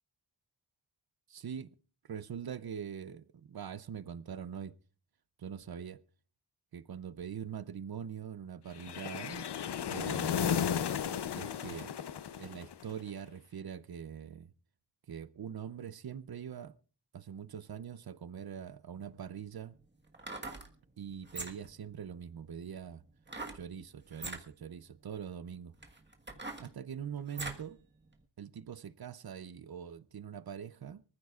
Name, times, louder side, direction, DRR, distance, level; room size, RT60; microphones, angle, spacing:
voice 1, 1.3-1.7 2.1-4.7 5.4-6.0 6.7-9.5 9.9-10.5 11.3-11.9 12.4-14.5 15.1-16.7 17.1-19.8 21.0-23.0 23.5-25.7 26.6-27.8 28.4-31.0, right 8 dB, 60° right, 0.7 m, -43 dB
sound 1, 8.8-13.0, left 8 dB, 75° left, 0.7 m, -34 dB
sound 2, 18.9-19.0 20.1-20.7 21.2-21.8 23.3-23.6 24.1-24.4 25.2-25.3 25.8-27.7 28.1-28.2, right 3 dB, 25° right, 1.5 m, -42 dB
24.0 x 14.5 x 2.4 m
wide cardioid pair, 115°, 41 cm